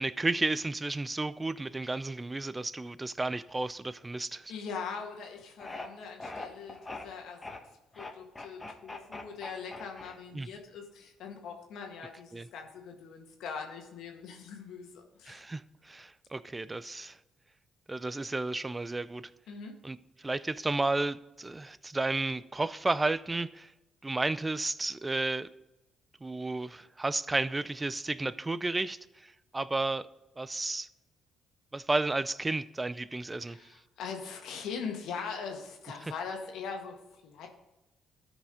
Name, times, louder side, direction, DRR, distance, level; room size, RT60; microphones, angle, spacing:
voice 1, 0.0-4.5 10.3-10.5 12.3-12.5 15.3-17.2 17.9-19.3 19.8-23.7 24.0-25.5 26.2-30.1 30.4-30.9 31.7-33.6 36.0-36.1, right 2 dB, 20° right, 0.5 m, -32 dB
voice 2, 4.5-7.6 7.9-15.4 19.5-19.8 33.5-37.5, left 5 dB, 70° left, 1.7 m, -41 dB
sound 1, 5.6-5.9 6.2-7.0 7.4-7.6 7.9-10.5, left 2 dB, 25° left, 1.6 m, -41 dB
13.0 x 5.0 x 3.8 m
hypercardioid pair, 50°, 0 cm